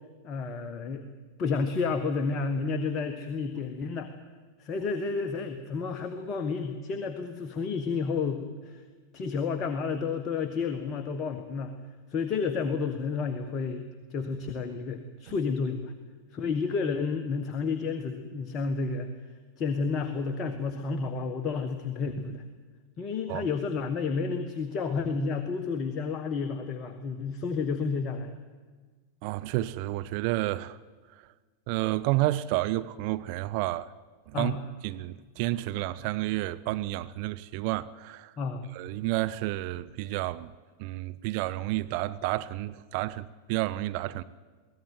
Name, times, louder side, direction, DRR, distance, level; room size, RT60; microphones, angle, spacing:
voice 1, 0.2-1.0 1.4-4.1 4.6-8.8 9.1-11.7 12.1-15.9 16.3-19.1 19.6-22.4 23.0-28.4 34.3-34.6 38.4-38.7, left 4 dB, 30° left, 1.5 m, -31 dB
voice 2, 29.2-30.8 31.7-33.9 34.3-34.5 34.8-38.3 38.7-40.5 40.8-44.2, right 17 dB, 45° right, 0.7 m, -30 dB
23.0 x 16.5 x 9.4 m
figure-of-eight pair, 90°, 0 cm